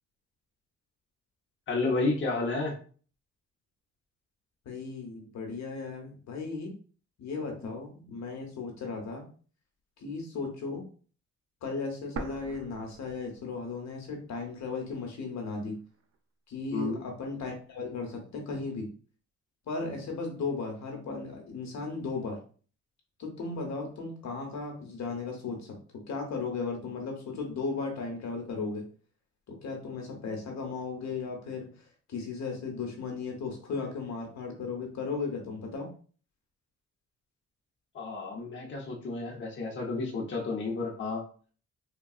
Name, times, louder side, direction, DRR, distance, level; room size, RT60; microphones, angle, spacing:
voice 1, 1.7-2.7 16.7-17.0 37.9-41.2, left 3 dB, 40° left, 0 dB, 0.8 m, -31 dB
voice 2, 4.6-6.7 7.2-9.2 10.0-10.8 11.6-15.8 16.5-18.9 19.7-22.4 23.2-28.9 29.5-35.9, left 4 dB, 65° left, 1 dB, 1.0 m, -36 dB
sound 1, 12.2-14.1 14.4-14.5 15.2-16.2, right 4 dB, 50° right, 0.5 m, -42 dB
3.5 x 2.3 x 2.3 m, 0.41 s
cardioid pair, 90°, 30 cm